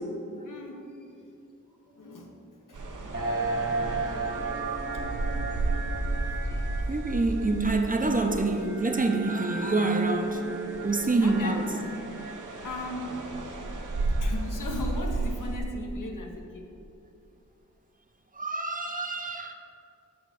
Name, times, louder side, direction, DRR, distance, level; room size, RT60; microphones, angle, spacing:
voice 1, 0.4-0.9 1.9-2.3 2.7-2.8 11.2-11.6 12.6-13.2 14.2-16.6, left 2 dB, 85° left, 1 dB, 0.8 m, -37 dB
sound 1, 2.7-8.9 9.4-15.6, right 2 dB, 80° right, 0.7 m, -33 dB
sound 2, 3.1-14.5, right 3 dB, 45° right, 1.2 m, -36 dB
voice 2, 6.9-10.5 10.8-11.6 12.3-12.4 18.4-19.5, right 3 dB, 30° right, 5 dB, 0.5 m, -26 dB
6.3 x 3.4 x 6.0 m, 2.7 s
wide cardioid pair, 75°, 31 cm